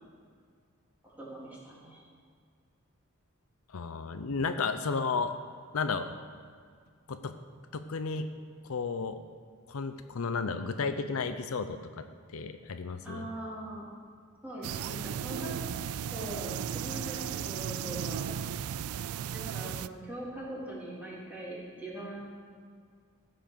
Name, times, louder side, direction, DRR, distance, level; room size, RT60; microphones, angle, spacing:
voice 1, 1.0-2.0 13.0-13.9 14.4-15.5 16.1-18.3 19.3-22.2, right 1 dB, 10° right, -7 dB, 3.5 m, -41 dB
voice 2, 3.7-5.3 5.7-6.2 7.1-7.3 7.7-8.3 8.6-9.2 9.7-12.0 12.3-13.3, left 4 dB, 75° left, 9 dB, 0.6 m, -33 dB
sound 1, 14.6-19.9, right 9 dB, 85° right, 0.3 m, -35 dB
15.0 x 5.8 x 6.8 m, 2.1 s
head